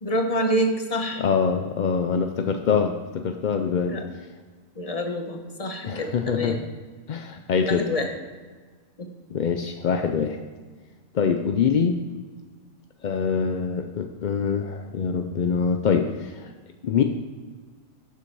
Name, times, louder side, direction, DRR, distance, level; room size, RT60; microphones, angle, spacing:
voice 1, 0.0-1.2 3.9-4.1 4.8-6.6 7.6-8.1 9.0-9.1, equal, 30° left, 4 dB, 1.1 m, -27 dB
voice 2, 1.2-4.0 5.8-6.6 7.1-7.9 9.3-10.4 11.1-12.0 13.0-16.5 16.8-17.0, left 6 dB, 55° left, 6 dB, 0.5 m, -24 dB
12.5 x 7.1 x 4.7 m, 1.4 s
omnidirectional pair, 1.4 m